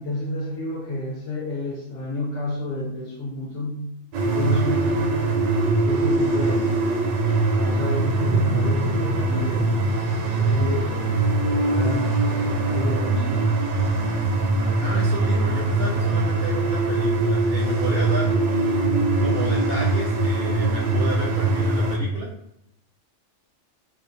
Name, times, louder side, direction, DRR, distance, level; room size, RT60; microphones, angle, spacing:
voice 1, 0.0-3.9 4.2-5.2 5.8-6.7 7.6-9.7 10.2-13.5, left 1 dB, 70° left, -3 dB, 0.9 m, -30 dB
sound 1, 4.1-22.0, right 2 dB, 90° right, 1.0 m, -22 dB
voice 2, 14.7-18.5 19.2-22.3, right 2 dB, 65° right, -3 dB, 0.6 m, -32 dB
2.5 x 2.3 x 2.5 m, 0.76 s
omnidirectional pair, 1.3 m